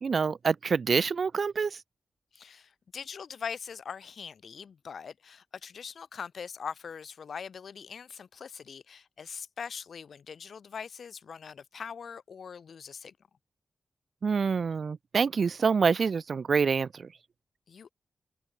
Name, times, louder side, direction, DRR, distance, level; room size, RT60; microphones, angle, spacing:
voice 1, 0.0-1.8 14.2-17.1, right 5 dB, 55° right, 0.8 m, -26 dB
voice 2, 2.3-13.1 17.7-17.9, left 6 dB, 70° left, 1.1 m, -42 dB
wide cardioid pair, 155°, 0 cm